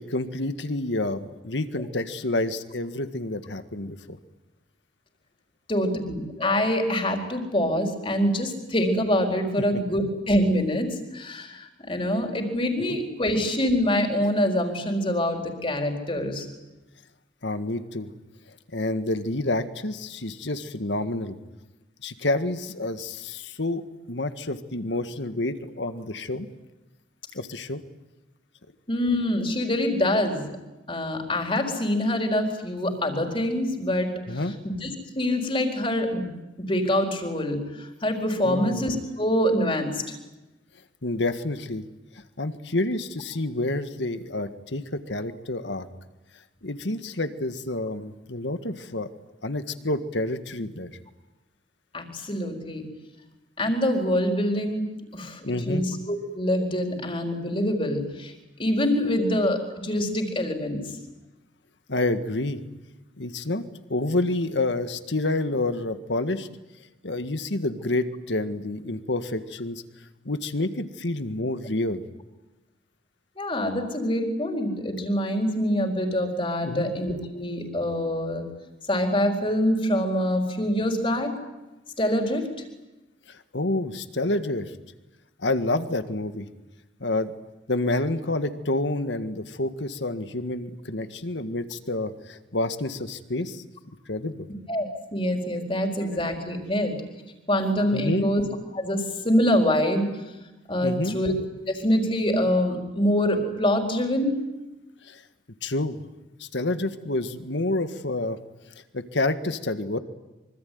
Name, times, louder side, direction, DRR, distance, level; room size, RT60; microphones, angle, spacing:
voice 1, 0.0-4.2 12.8-13.0 17.4-18.1 18.7-21.4 22.0-26.5 27.3-27.8 34.3-34.6 38.4-38.9 41.0-41.9 42.4-45.9 46.6-49.1 49.4-50.9 55.4-55.8 59.0-59.3 61.9-62.6 63.2-63.6 63.9-66.5 67.0-69.8 70.3-72.0 76.6-76.9 83.3-84.7 85.4-86.5 87.0-87.3 87.7-93.6 94.1-94.5 95.9-96.0 97.9-98.3 100.8-101.2 105.0-105.2 105.6-106.0 106.4-108.4 108.9-110.0, left 2 dB, 75° left, 10 dB, 1.8 m, -28 dB
voice 2, 5.7-16.5 28.9-30.5 30.9-34.4 34.6-34.9 35.2-40.1 51.9-52.8 53.6-55.4 55.7-58.3 58.6-60.8 73.4-78.5 78.9-81.3 82.0-82.5 94.7-97.0 97.5-98.4 98.7-100.1 100.7-101.3 101.7-104.3, left 1 dB, 30° left, 3 dB, 4.3 m, -25 dB
25.5 x 24.5 x 9.5 m, 1.0 s
head